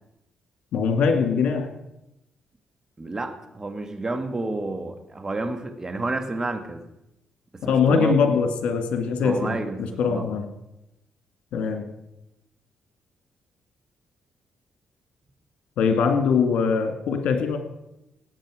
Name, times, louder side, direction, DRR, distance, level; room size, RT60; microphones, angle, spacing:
voice 1, 0.7-1.7 7.6-10.5 11.5-11.8 15.8-17.6, left 5 dB, 75° left, 5 dB, 2.1 m, -22 dB
voice 2, 3.0-6.8 7.6-8.1 9.2-10.3, right 2 dB, 25° right, 7 dB, 2.0 m, -30 dB
18.0 x 8.2 x 5.0 m, 0.88 s
supercardioid pair, 65°, 2 cm